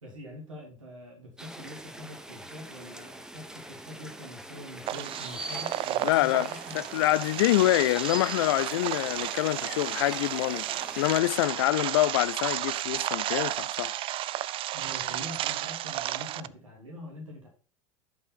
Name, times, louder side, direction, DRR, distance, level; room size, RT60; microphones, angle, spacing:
voice 1, 0.0-6.8 14.7-17.5, left 1 dB, 80° right, 3.1 m, -44 dB
sound 1, 1.4-11.2, right 1 dB, 5° right, 0.9 m, -43 dB
sound 2, 4.9-16.5, right 14 dB, 35° right, 0.4 m, -33 dB
voice 2, 6.0-10.7 11.0-13.9, left 17 dB, 60° left, 0.4 m, -26 dB
11.5 x 5.7 x 4.0 m
figure-of-eight pair, 80°, 16 cm